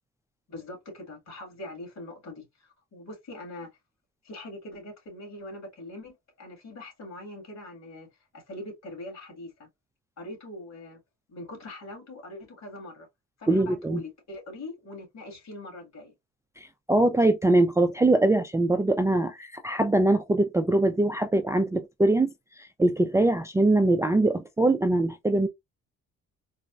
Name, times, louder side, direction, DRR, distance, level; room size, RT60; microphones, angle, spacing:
voice 1, 0.5-3.7 4.2-8.1 8.3-9.7 10.2-11.0 11.3-13.1 13.4-16.1, left 1 dB, 60° left, 2.0 m, -42 dB
voice 2, 13.5-14.0 16.9-22.3 22.8-25.5, right 2 dB, 10° right, 0.3 m, -22 dB
4.0 x 2.1 x 2.4 m
cardioid pair, 90°, 30 cm